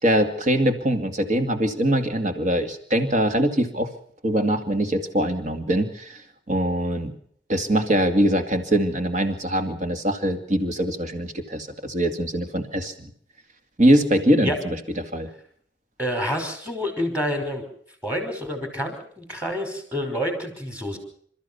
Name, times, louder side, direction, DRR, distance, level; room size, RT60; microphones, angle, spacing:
voice 1, 0.0-3.9 4.2-6.2 6.5-7.1 7.5-13.1 13.8-15.3, right 1 dB, 45° right, 7 dB, 2.4 m, -22 dB
voice 2, 16.0-17.6 18.0-21.0, equal, 10° right, 5 dB, 5.3 m, -28 dB
28.5 x 14.0 x 7.1 m, 0.62 s
head